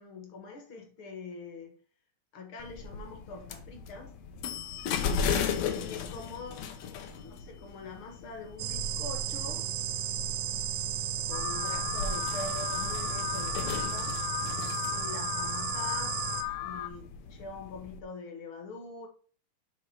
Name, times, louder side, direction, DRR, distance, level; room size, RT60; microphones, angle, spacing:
voice 1, 0.0-1.8 2.3-4.1 5.7-6.7 7.2-9.7 11.3-14.2 14.9-16.2 16.6-19.1, left 4 dB, 50° left, 1.8 m, -43 dB
sound 1, 2.6-18.0, left 6 dB, 70° left, 1.8 m, -37 dB
sound 2, 8.6-16.4, right 10 dB, 80° right, 1.9 m, -34 dB
Alarm, 11.3-16.9, left 13 dB, 85° left, 2.3 m, -36 dB
7.8 x 3.5 x 5.6 m
omnidirectional pair, 3.5 m